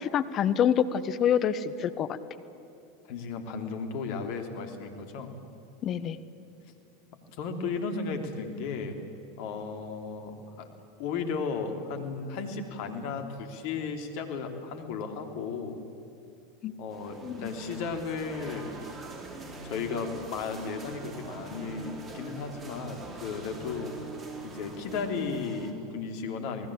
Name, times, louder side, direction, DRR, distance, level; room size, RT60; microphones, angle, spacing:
voice 1, 0.0-2.1 5.8-6.2 16.6-16.7 17.2-17.4, left 9 dB, 40° left, 14 dB, 1.3 m, -26 dB
voice 2, 3.0-5.3 7.3-9.0 9.4-10.7 11.0-15.8 16.8-18.7 19.6-24.0 24.4-26.7, left 5 dB, 60° left, 5 dB, 3.3 m, -35 dB
sound 1, 16.9-25.7, right 3 dB, 25° right, 4.2 m, -43 dB
28.0 x 19.5 x 8.9 m, 2.9 s
hypercardioid pair, 90°, 0 cm